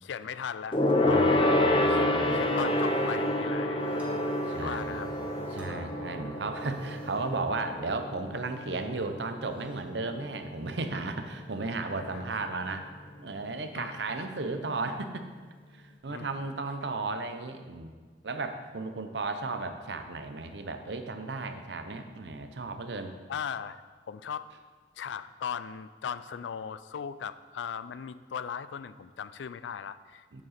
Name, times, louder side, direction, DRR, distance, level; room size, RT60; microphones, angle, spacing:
voice 1, 0.0-1.4 1.9-3.9 4.5-5.1 5.6-6.1 12.1-12.2 13.7-13.9 16.1-16.5 23.3-23.8 24.1-24.5 25.0-30.4, left 7 dB, 80° left, 15 dB, 0.4 m, -38 dB
Gong, 0.7-10.5 10.8-11.1 11.4-11.5, left 1 dB, 30° left, 0.6 m, -28 dB
voice 2, 1.0-2.4 4.5-5.0 5.5-12.9 13.2-15.3 15.7-17.9 18.2-23.1 30.3-30.4, right 3 dB, 70° right, 7 dB, 0.7 m, -35 dB
sound 1, 2.2-10.8, equal, 5° right, 1.2 m, -52 dB
7.7 x 7.4 x 4.2 m, 1.5 s
head